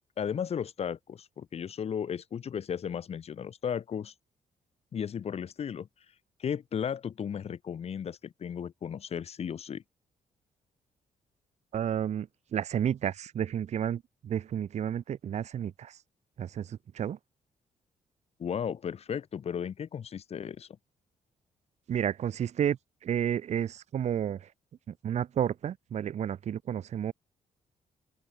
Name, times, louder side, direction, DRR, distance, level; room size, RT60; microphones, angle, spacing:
voice 1, 0.2-4.1 4.9-5.9 6.4-9.8 18.4-20.7, left 8 dB, 50° left, 1.0 m, -35 dB
voice 2, 11.7-16.0 16.4-17.2 21.9-24.5 24.9-27.1, right 9 dB, 55° right, 0.7 m, -31 dB
open air
cardioid pair, 95°, 14 cm